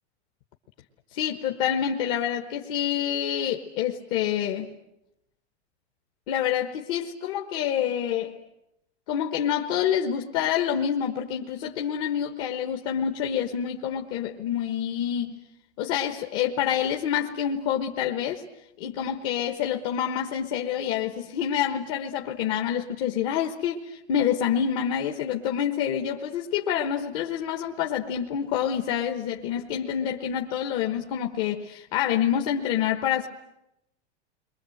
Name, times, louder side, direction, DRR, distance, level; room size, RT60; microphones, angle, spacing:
voice 1, 1.1-4.7 6.3-8.3 9.1-15.4 15.8-18.4 18.8-33.3, left 9 dB, 35° left, 3 dB, 1.2 m, -27 dB
29.5 x 23.0 x 7.8 m, 0.86 s
supercardioid pair, 165°, 35 cm